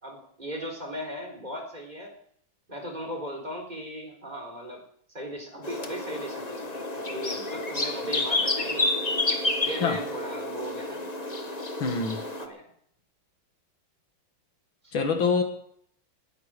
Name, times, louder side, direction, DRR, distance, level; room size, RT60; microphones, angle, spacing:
voice 1, 0.0-2.1 2.7-4.8 5.1-8.9 9.4-11.0 12.4-12.7 14.8-14.9, equal, 20° right, 2 dB, 4.2 m, -37 dB
sound 1, 5.6-12.5, left 2 dB, 20° left, 1.4 m, -30 dB
voice 2, 11.8-12.3 14.9-15.4, left 5 dB, 90° left, 6 dB, 2.7 m, -25 dB
19.5 x 14.0 x 5.1 m, 0.66 s
omnidirectional pair, 2.1 m